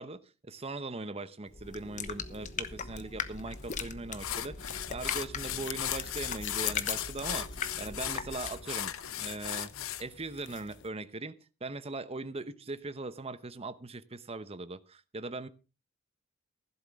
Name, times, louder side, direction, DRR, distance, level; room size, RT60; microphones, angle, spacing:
voice 1, 0.0-9.7 10.0-15.5, right 3 dB, 30° right, 0.9 m, -40 dB
sound 1, 1.5-8.8, left 5 dB, 40° left, 1.1 m, -40 dB
sound 2, 3.7-3.8 4.2-10.0, left 11 dB, 90° left, 0.8 m, -37 dB
sound 3, 5.4-10.9, left 13 dB, 60° left, 0.8 m, -42 dB
15.5 x 12.0 x 3.6 m
head